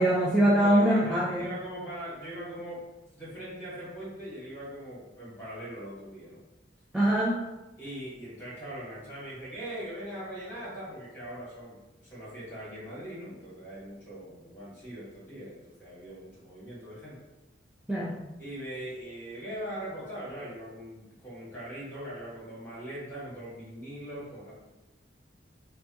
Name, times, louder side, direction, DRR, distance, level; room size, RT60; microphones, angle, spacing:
voice 1, 0.0-1.4 6.9-7.5 17.9-18.2, right 1 dB, 5° right, -6 dB, 0.3 m, -23 dB
voice 2, 0.6-2.8 3.1-6.4 7.8-17.2 18.4-24.5, right 1 dB, 10° left, -8 dB, 1.3 m, -41 dB
3.3 x 2.2 x 2.7 m, 1.0 s
head